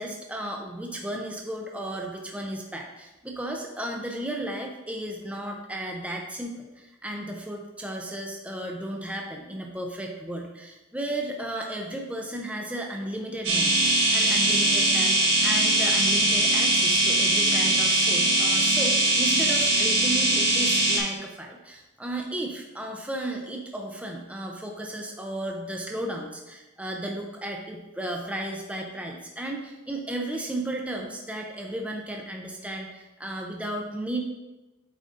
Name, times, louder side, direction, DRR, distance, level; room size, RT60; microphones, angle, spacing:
voice 1, 0.0-34.2, right 1 dB, 5° right, 1 dB, 0.6 m, -34 dB
sound 1, 13.4-21.0, right 2 dB, 60° right, 1.6 m, -21 dB
8.4 x 4.0 x 3.8 m, 1.0 s
head